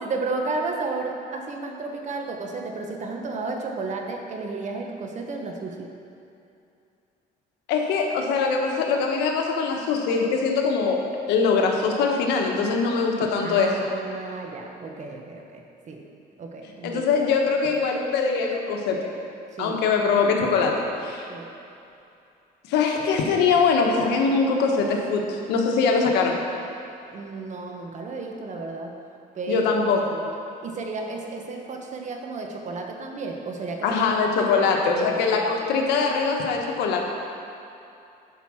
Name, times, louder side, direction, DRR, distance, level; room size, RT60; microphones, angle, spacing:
voice 1, 0.0-5.9 13.4-16.0 16.4-17.0 19.5-19.8 21.3-21.5 27.1-29.0 29.3-29.7 30.1-30.3 30.6-34.0 34.4-34.5 34.7-35.2, right 3 dB, 45° right, 2 dB, 1.2 m, -33 dB
voice 2, 7.7-11.0 11.3-13.7 16.8-19.1 19.6-21.3 22.7-26.4 29.5-30.1 33.8-37.0, left 5 dB, 90° left, 1 dB, 1.2 m, -22 dB
11.0 x 5.2 x 6.3 m, 2.7 s
cardioid pair, 110°, 17 cm